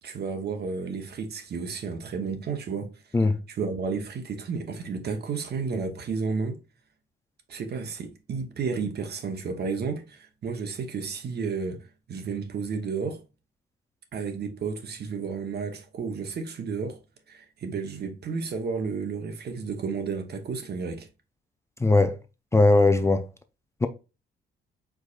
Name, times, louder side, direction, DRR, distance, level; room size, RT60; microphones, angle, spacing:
voice 1, 0.0-2.9 3.5-6.6 7.5-13.2 14.1-17.0 17.3-21.1, right 5 dB, 55° right, 1.0 m, -32 dB
voice 2, 21.8-22.2 22.5-23.3 23.8-23.9, left 2 dB, 15° left, 0.4 m, -19 dB
4.8 x 3.9 x 2.5 m
cardioid pair, 90°, 20 cm